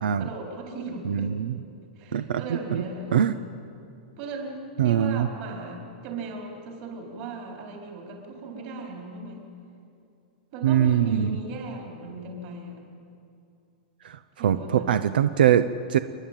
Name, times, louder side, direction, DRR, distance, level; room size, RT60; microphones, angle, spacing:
voice 1, 0.2-1.3 2.0-3.5 4.2-9.4 10.5-12.8 14.4-14.9, right 3 dB, 35° right, 0 dB, 4.2 m, -37 dB
voice 2, 1.1-1.5 2.1-2.4 2.7-2.8 3.1-3.3 4.8-5.3 10.6-11.4 14.0-16.0, right 9 dB, 80° right, 12 dB, 0.7 m, -22 dB
29.0 x 11.0 x 9.1 m, 2.5 s
supercardioid pair, 175°, 5 cm